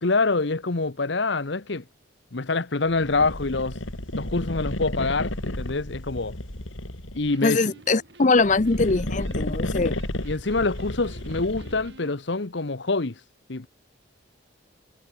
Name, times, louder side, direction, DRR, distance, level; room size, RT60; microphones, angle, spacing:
voice 1, 0.0-1.8 2.3-3.8 4.2-6.4 7.1-7.6 10.2-13.2 13.5-13.7, left 3 dB, 60° left, 1.0 m, -26 dB
sound 1, 2.9-7.4 8.3-12.0, left 1 dB, 80° left, 4.6 m, -32 dB
Electric guitar, 7.1-12.1, right 2 dB, 60° right, 6.2 m, -51 dB
voice 2, 7.4-10.0, left 3 dB, 40° left, 0.7 m, -22 dB
head